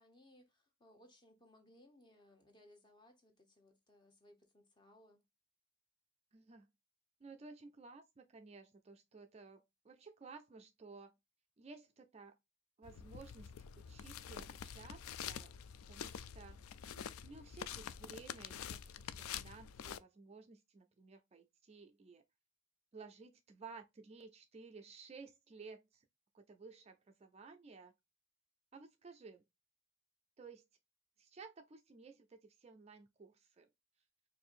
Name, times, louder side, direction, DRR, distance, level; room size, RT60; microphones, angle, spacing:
voice 1, 0.0-5.2, left 1 dB, 20° left, 0.8 m, -65 dB
voice 2, 6.3-6.7 7.2-11.2 11.6-12.4 12.8-15.5 15.9-16.6 16.9-22.2 22.9-26.1 26.3-27.9 28.7-29.4 30.4-30.6 31.2-33.7, right 4 dB, 30° right, 0.3 m, -55 dB
sound 1, 12.8-20.0, left 8 dB, 75° left, 0.3 m, -47 dB
4.3 x 2.6 x 2.4 m
head